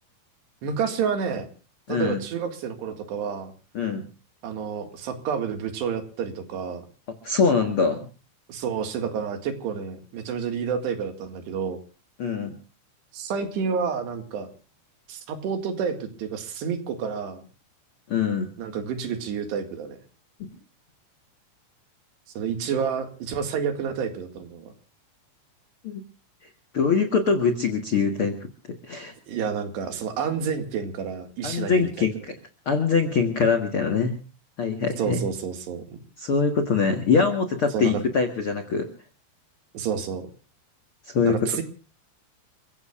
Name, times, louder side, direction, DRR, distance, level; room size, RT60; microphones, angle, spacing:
voice 1, 0.6-1.5 1.9-3.5 4.4-6.9 8.5-11.8 13.1-14.5 15.1-17.5 18.6-20.0 22.4-24.7 29.3-32.1 35.0-36.0 37.7-38.0 39.7-40.3 41.2-41.6, right 6 dB, 75° right, 6 dB, 4.0 m, -29 dB
voice 2, 1.9-2.2 3.7-4.0 7.2-8.0 12.2-12.6 18.1-18.5 20.4-20.5 25.8-26.0 26.7-28.5 28.9-29.1 31.4-32.3 32.6-34.1 34.6-35.2 36.2-38.9 41.0-41.5, left 5 dB, 65° left, 6 dB, 1.3 m, -23 dB
29.0 x 16.0 x 2.5 m, 0.34 s
omnidirectional pair, 5.0 m